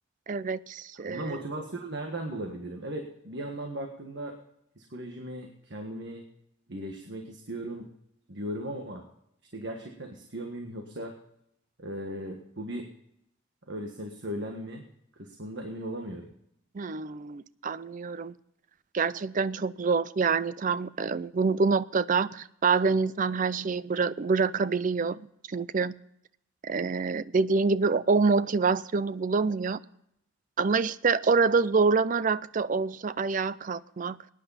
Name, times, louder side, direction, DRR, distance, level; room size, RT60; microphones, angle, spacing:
voice 1, 0.3-1.4 16.7-18.3 18.9-25.2 25.5-26.0 26.6-29.8 30.6-34.2, right 4 dB, 40° right, 17 dB, 0.4 m, -26 dB
voice 2, 1.0-4.3 4.8-6.2 6.7-7.9 8.3-9.0 9.5-11.1 11.8-12.9 13.7-14.8 15.2-16.3, right 1 dB, 60° right, 3 dB, 1.5 m, -37 dB
20.0 x 10.0 x 4.1 m, 0.75 s
head